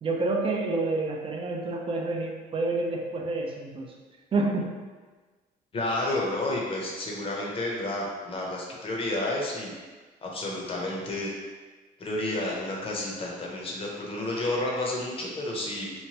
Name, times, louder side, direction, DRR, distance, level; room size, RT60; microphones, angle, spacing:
voice 1, 0.0-3.9 4.3-4.7, right 3 dB, 35° right, 0 dB, 0.5 m, -28 dB
voice 2, 5.7-9.7 10.2-11.3 12.0-15.9, left 1 dB, 35° left, -2 dB, 0.7 m, -30 dB
3.0 x 2.2 x 2.8 m, 1.4 s
cardioid pair, 110°, 17 cm